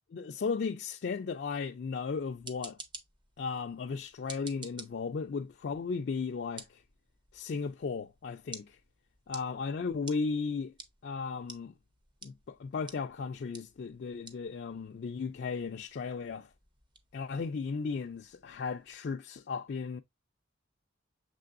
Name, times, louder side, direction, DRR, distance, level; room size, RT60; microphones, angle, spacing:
voice 1, 0.1-2.8 3.4-6.8 7.3-8.8 9.3-10.7 11.0-11.7 12.2-16.5 17.1-20.0, left 5 dB, 55° left, 0.3 m, -35 dB
sound 1, 2.2-19.0, right 3 dB, 25° right, 0.6 m, -53 dB
6.7 x 3.3 x 2.4 m
head